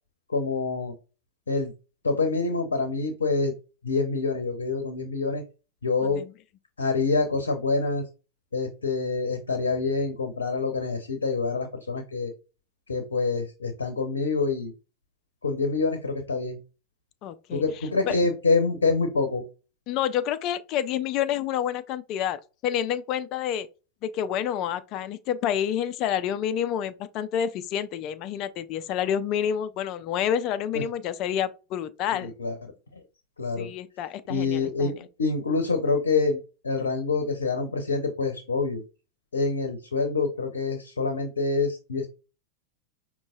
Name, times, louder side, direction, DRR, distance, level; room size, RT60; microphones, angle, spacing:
voice 1, 0.3-0.9 1.5-1.7 2.0-3.5 3.8-5.4 5.8-6.2 6.8-8.0 8.5-12.3 12.9-14.7 15.4-16.6 17.5-19.4 30.7-30.8 32.1-32.6 33.4-33.7 34.3-36.4 36.6-38.8 39.3-42.1, left 4 dB, 70° left, 0.7 m, -26 dB
voice 2, 17.2-17.6 18.1-18.2 19.9-23.7 24.0-32.3 33.6-34.9, left 9 dB, 40° left, 0.5 m, -28 dB
5.3 x 2.9 x 2.3 m
figure-of-eight pair, 90°, 0 cm